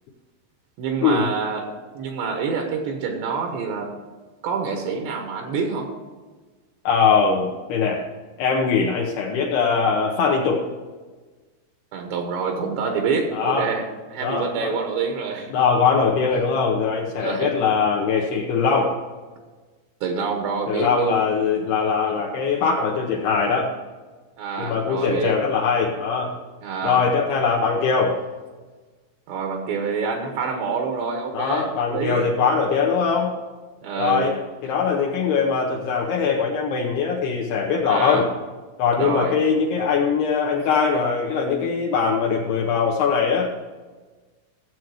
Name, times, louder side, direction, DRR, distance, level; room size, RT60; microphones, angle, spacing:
voice 1, 0.8-3.9 4.4-5.9 11.9-15.5 17.2-17.5 20.0-21.2 24.4-25.4 26.6-27.0 29.3-32.3 33.8-34.3 37.9-38.3 39.0-39.3, right 5 dB, 75° right, 3 dB, 3.3 m, -27 dB
voice 2, 6.9-8.0 8.4-10.7 13.3-13.7 14.2-14.7 15.5-19.0 20.7-23.7 24.6-26.4 26.8-28.2 31.3-33.3 34.0-38.3 38.8-43.5, left 5 dB, 75° left, -1 dB, 2.8 m, -21 dB
15.5 x 7.6 x 4.9 m, 1.3 s
omnidirectional pair, 5.1 m